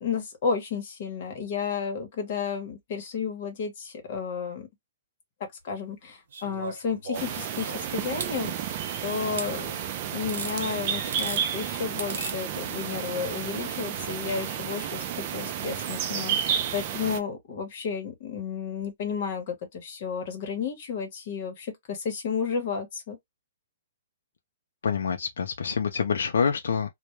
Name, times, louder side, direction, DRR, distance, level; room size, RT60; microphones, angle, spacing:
voice 1, 0.0-4.7 5.6-8.8 9.0-9.8 10.1-23.2, left 6 dB, 40° left, 0.9 m, -32 dB
sound 1, 6.3-8.3 9.4-9.5 10.3-10.6 11.0-11.4 12.0-12.4 13.6-13.7, right 4 dB, 55° right, 1.0 m, -36 dB
sound 2, 7.1-17.2, right 9 dB, 30° right, 0.3 m, -31 dB
voice 2, 24.8-26.9, left 6 dB, 80° left, 0.4 m, -26 dB
2.2 x 2.1 x 2.9 m
hypercardioid pair, 170°, 0 cm